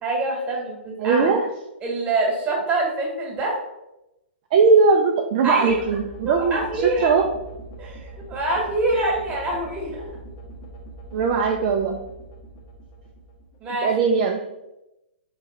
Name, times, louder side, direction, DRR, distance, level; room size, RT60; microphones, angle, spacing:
voice 1, 0.0-1.3 1.8-3.6 5.4-5.8 6.2-7.1 7.8-10.1 13.6-13.9, right 2 dB, 20° right, -1 dB, 1.4 m, -25 dB
voice 2, 1.0-1.5 4.5-7.3 11.1-12.0 13.8-14.4, right 5 dB, 45° right, 2 dB, 0.5 m, -19 dB
sound 1, 5.6-13.8, right 2 dB, 35° left, 0.8 m, -42 dB
3.6 x 3.2 x 4.1 m, 0.92 s
hypercardioid pair, 125°, 6 cm